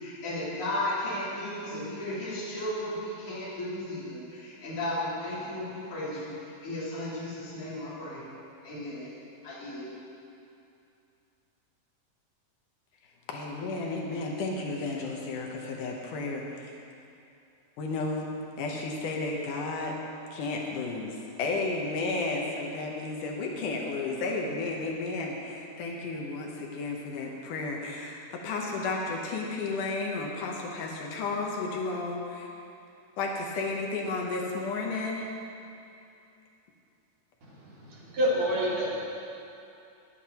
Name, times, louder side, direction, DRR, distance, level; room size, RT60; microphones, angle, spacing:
voice 1, 0.0-8.2 8.6-9.1 9.4-9.9, left 1 dB, 40° left, -12 dB, 3.8 m, -34 dB
voice 2, 13.3-16.8 17.8-18.3 18.6-19.9 20.3-32.5 33.2-35.3, left 3 dB, 70° left, 0 dB, 2.3 m, -33 dB
voice 3, 37.5-39.0, equal, 55° right, -7 dB, 3.5 m, -28 dB
19.5 x 9.3 x 2.9 m, 2.7 s
omnidirectional pair, 4.1 m